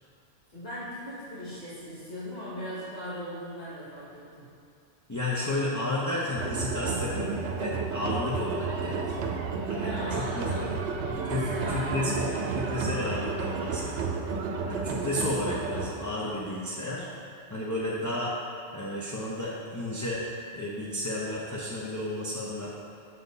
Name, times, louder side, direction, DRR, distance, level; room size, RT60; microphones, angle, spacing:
voice 1, 0.5-4.4 9.8-10.7 11.1-12.3, equal, 60° left, -13 dB, 1.9 m, -39 dB
voice 2, 5.1-9.0 9.7-10.7 11.3-14.1 14.7-17.1 17.5-18.4 18.7-20.2 20.5-22.7, left 1 dB, 20° left, -6 dB, 0.6 m, -32 dB
sound 1, 6.4-15.9, right 4 dB, 80° right, 0.9 m, -31 dB
6.7 x 4.3 x 5.3 m, 2.4 s
omnidirectional pair, 1.2 m